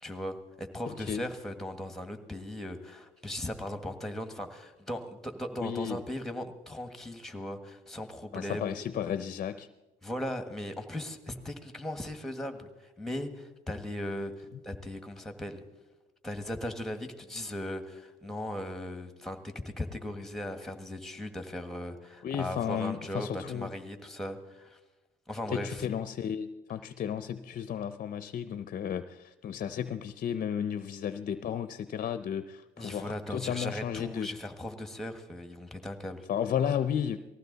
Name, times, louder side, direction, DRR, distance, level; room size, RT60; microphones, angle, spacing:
voice 1, 0.0-8.7 10.0-15.6 16.2-24.8 25.3-25.8 32.8-36.3, left 1 dB, ahead, 7 dB, 1.6 m, -38 dB
voice 2, 0.9-1.3 5.6-6.0 8.3-9.7 22.2-23.7 25.5-34.3 36.3-37.2, left 8 dB, 50° left, 12 dB, 0.6 m, -33 dB
19.5 x 15.0 x 4.0 m, 1.1 s
cardioid pair, 95°, 18 cm